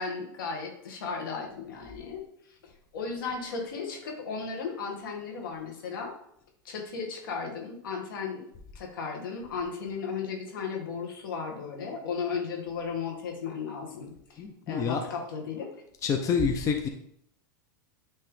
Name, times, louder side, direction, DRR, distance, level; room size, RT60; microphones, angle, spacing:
voice 1, 0.0-2.2 2.6-6.2 6.6-8.4 8.7-15.7, left 5 dB, 80° left, 2 dB, 1.7 m, -35 dB
voice 2, 14.4-15.0 16.0-16.9, left 6 dB, 30° left, 4 dB, 0.7 m, -27 dB
9.1 x 3.3 x 3.7 m, 0.70 s
hypercardioid pair, 120°, 11 cm